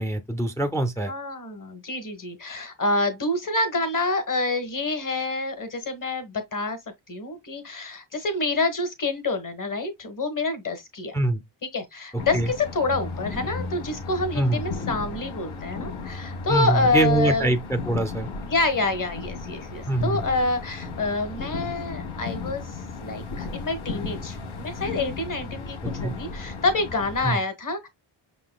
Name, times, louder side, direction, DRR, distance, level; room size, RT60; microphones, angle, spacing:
voice 1, 0.0-1.1 11.1-11.4 12.3-12.5 14.4-14.6 16.5-18.3 19.9-20.2 26.0-26.1 27.2-27.4, right 2 dB, 5° left, 0.4 m, -24 dB
voice 2, 1.1-6.8 7.1-11.2 11.7-17.5 18.4-22.6 23.0-27.9, left 3 dB, 40° left, 1.2 m, -27 dB
sound 1, 12.2-27.3, left 4 dB, 80° left, 1.3 m, -35 dB
5.8 x 3.8 x 2.2 m
wide cardioid pair, 130°, 49 cm